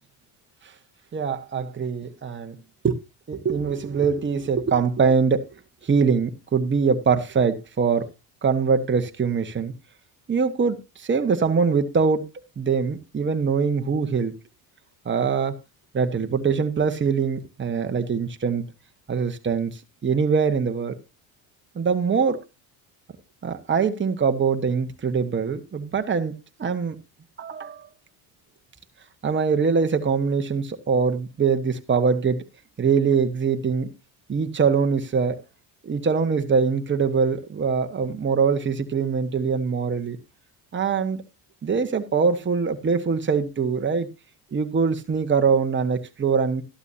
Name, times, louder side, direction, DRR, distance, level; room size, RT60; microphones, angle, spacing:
voice 1, 1.1-2.6 2.8-2.9 3.3-5.5 5.8-8.1 8.4-9.7 10.3-12.2 12.6-14.3 15.0-15.6 15.9-18.6 19.1-20.9 21.7-22.4 23.4-26.3 26.6-27.0 27.4-27.9 29.2-32.4 32.8-33.9 34.3-35.4 35.8-40.2 40.7-41.2 41.6-44.1 44.5-46.6, right 5 dB, 25° right, 1.3 m, -23 dB
13.0 x 12.0 x 2.7 m
supercardioid pair, 85°, 44 cm